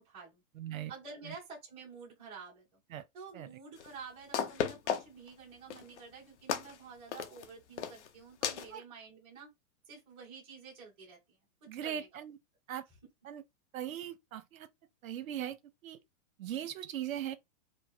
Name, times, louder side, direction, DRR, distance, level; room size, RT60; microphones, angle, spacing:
voice 1, 0.0-0.4 0.9-2.8 3.1-9.5 9.8-12.1, right 5 dB, 15° right, 1.6 m, -50 dB
voice 2, 0.6-0.9 1.3-1.4 2.9-3.0 3.3-3.5 8.7-8.8 11.7-12.4 12.7-12.9 13.2-13.4 13.7-14.7 15.0-15.6 15.8-16.0 16.4-17.3, right 10 dB, 70° right, 0.8 m, -39 dB
sound 1, 3.8-3.9 4.3-5.3 5.7-6.0 6.5-6.8 7.1-7.4 7.8-8.1 8.4-8.7, left 8 dB, 55° left, 0.7 m, -34 dB
5.2 x 2.0 x 4.3 m
supercardioid pair, 180°, 42 cm